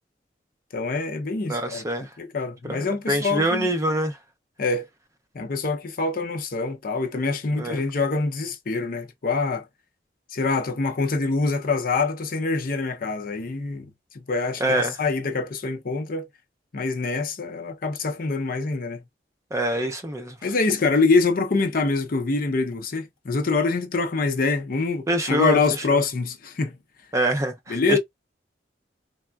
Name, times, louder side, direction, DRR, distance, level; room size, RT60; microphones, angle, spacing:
voice 1, 0.7-3.7 4.6-4.9 5.3-9.7 10.3-13.9 14.1-16.3 16.7-19.0 20.4-26.8 27.7-28.0, left 3 dB, 50° left, 0.5 m, -25 dB
voice 2, 1.5-2.1 2.7-4.2 7.6-7.8 14.6-14.9 19.5-20.4 25.1-25.6 25.9-26.0 27.1-28.0, right 1 dB, 15° right, 0.4 m, -25 dB
3.4 x 2.1 x 2.3 m
head